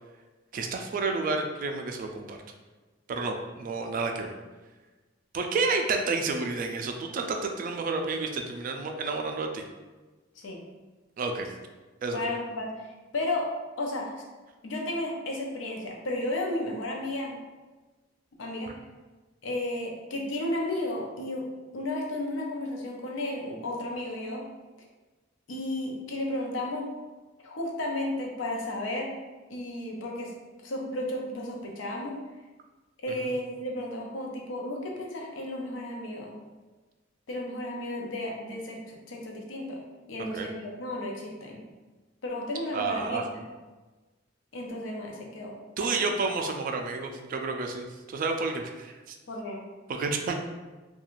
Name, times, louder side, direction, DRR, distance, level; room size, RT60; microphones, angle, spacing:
voice 1, 0.5-2.4 3.1-4.3 5.3-9.6 11.2-11.5 12.0-12.2 33.2-33.3 40.3-40.5 42.7-43.3 45.8-49.2 49.9-50.3, right 3 dB, 45° right, 4 dB, 0.3 m, -30 dB
voice 2, 12.1-12.7 13.1-13.5 13.8-14.1 14.6-17.4 18.4-18.7 19.4-21.4 21.7-24.4 25.5-26.9 27.4-29.1 29.5-30.3 30.6-32.1 33.0-36.3 37.3-39.8 40.1-41.6 42.2-43.4 44.5-45.5 45.8-46.0 46.4-46.5 49.3-49.6, left 1 dB, 85° left, 0 dB, 0.5 m, -33 dB
2.4 x 2.3 x 3.0 m, 1.3 s
head